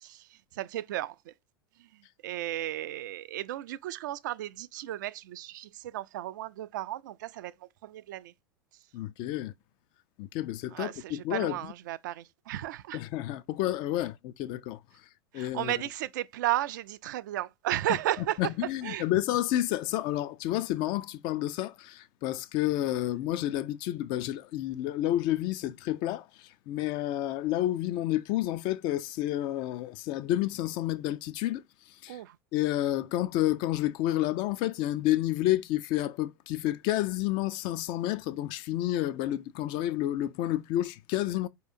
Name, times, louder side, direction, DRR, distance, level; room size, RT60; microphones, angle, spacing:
voice 1, 0.0-1.3 1.8-1.9 2.2-7.5 7.8-8.3 10.7-13.0 15.3-18.4 18.8-19.1 32.1-32.4, right 14 dB, 55° right, 0.4 m, -34 dB
voice 2, 8.9-9.5 10.2-11.7 12.9-14.8 15.3-15.7 17.9-18.0 18.4-31.6 32.0-32.2 32.5-41.5, left 14 dB, 40° left, 0.4 m, -30 dB
4.7 x 2.8 x 2.5 m
figure-of-eight pair, 85°, 12 cm